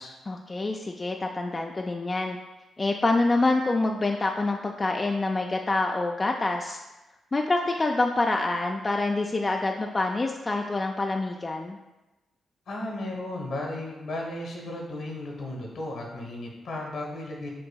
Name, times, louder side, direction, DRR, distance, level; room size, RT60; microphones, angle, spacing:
voice 1, 0.3-2.4 2.8-6.8 7.3-11.8, left 2 dB, 35° left, 2 dB, 0.3 m, -26 dB
voice 2, 12.7-17.5, left 1 dB, 70° left, 0 dB, 1.2 m, -35 dB
7.5 x 2.6 x 2.3 m, 1.0 s
hypercardioid pair, 45°, 0 cm